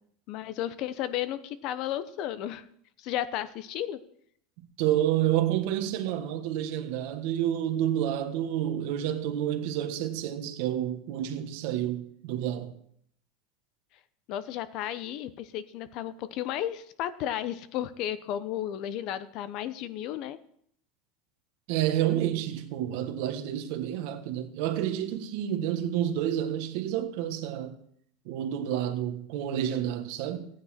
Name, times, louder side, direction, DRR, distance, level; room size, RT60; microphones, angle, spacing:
voice 1, 0.3-2.6 3.0-4.0 14.3-20.4, left 11 dB, 55° left, 0.9 m, -33 dB
voice 2, 4.8-12.7 21.7-27.8 28.3-30.5, right 11 dB, 65° right, 1.4 m, -29 dB
15.5 x 9.5 x 4.4 m
supercardioid pair, 125°, 0 cm